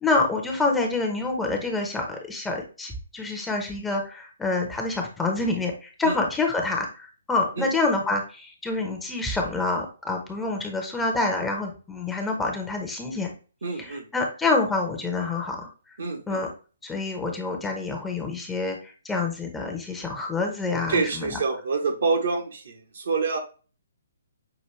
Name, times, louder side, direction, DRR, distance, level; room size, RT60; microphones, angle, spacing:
voice 1, 0.0-13.3 13.8-15.7 16.3-16.5 16.8-21.4, left 3 dB, 10° left, 1 dB, 0.8 m, -27 dB
voice 2, 13.6-14.0 16.0-16.4 20.9-23.4, right 4 dB, 65° right, 3 dB, 1.1 m, -27 dB
6.0 x 2.5 x 3.1 m, 0.36 s
figure-of-eight pair, 135°, 0 cm